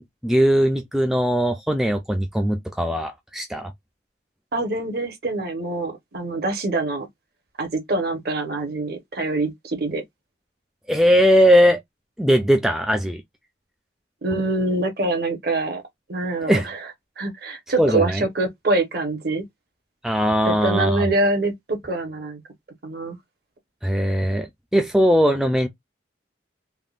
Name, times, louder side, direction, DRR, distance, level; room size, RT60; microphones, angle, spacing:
voice 1, 0.2-3.7 10.9-11.8 12.2-13.2 16.5-16.7 17.8-18.2 20.0-21.1 23.8-25.7, equal, ahead, 0.3 m, -19 dB
voice 2, 4.5-7.1 7.6-10.0 14.2-15.8 16.1-16.9 17.2-19.4 20.4-22.4 22.8-23.2, right 2 dB, 55° right, 0.9 m, -25 dB
3.5 x 2.1 x 2.3 m
head